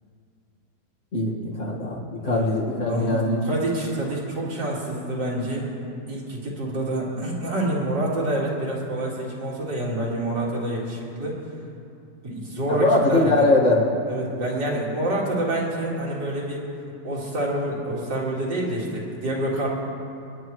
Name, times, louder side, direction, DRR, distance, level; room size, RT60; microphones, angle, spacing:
voice 1, 1.1-3.5 12.7-13.9, left 2 dB, 45° left, -3 dB, 2.1 m, -21 dB
voice 2, 2.2-2.6 2.9-5.7 6.1-11.4 12.2-13.5 14.1-16.6 17.0-19.7, right 1 dB, 80° right, -4 dB, 2.9 m, -27 dB
27.0 x 9.8 x 3.1 m, 2.5 s
omnidirectional pair, 1.9 m